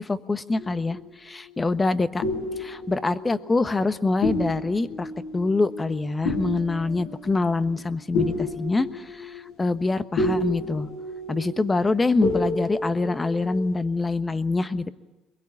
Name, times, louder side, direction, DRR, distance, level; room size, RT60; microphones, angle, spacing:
voice 1, 0.0-2.2 2.6-10.9 11.3-14.9, left 3 dB, 20° left, 13 dB, 1.3 m, -25 dB
sound 1, 0.6-1.6 2.2-3.9 4.2-13.7, left 2 dB, 80° left, 7.7 m, -31 dB
23.0 x 21.5 x 8.7 m, 1.1 s
supercardioid pair, 95°, 0 cm